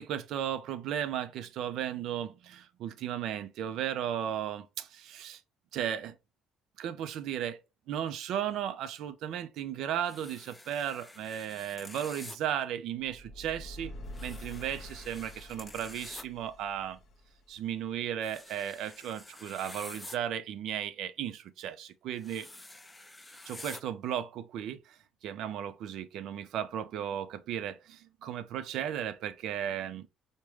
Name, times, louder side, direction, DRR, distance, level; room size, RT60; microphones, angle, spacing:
voice 1, 0.0-5.4 5.7-6.2 6.8-7.6 7.9-13.9 14.2-17.0 17.5-22.5 23.5-30.1, right 10 dB, 70° right, 0.4 m, -35 dB
sound 1, 10.0-12.4 14.1-16.2 18.2-20.2 22.2-23.8, left 2 dB, 15° left, 0.4 m, -48 dB
sound 2, 13.0-18.0, left 1 dB, 60° left, 0.8 m, -47 dB
4.8 x 2.1 x 3.1 m
supercardioid pair, 80°, 0 cm